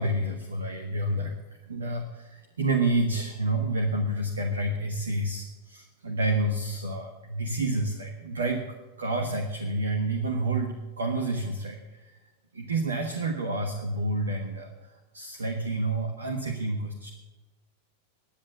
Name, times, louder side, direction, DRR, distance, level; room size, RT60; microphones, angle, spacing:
voice 1, 0.0-1.3 1.7-8.7 9.0-12.1 12.5-17.1, right 2 dB, 70° right, 4 dB, 1.3 m, -29 dB
10.5 x 10.0 x 8.2 m, 1.2 s
figure-of-eight pair, 90°, 0 cm